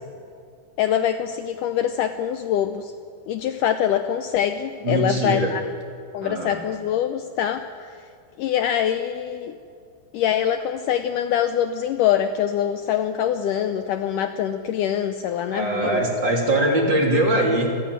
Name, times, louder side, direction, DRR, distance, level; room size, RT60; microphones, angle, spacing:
voice 1, 0.8-2.9 3.3-5.6 6.1-8.0 8.4-9.6 10.1-16.0, left 10 dB, 90° left, 8 dB, 1.8 m, -24 dB
voice 2, 4.8-5.5 6.2-6.6 15.5-17.8, right 1 dB, 30° right, 0 dB, 3.1 m, -22 dB
26.5 x 14.5 x 9.5 m, 2.3 s
omnidirectional pair, 4.7 m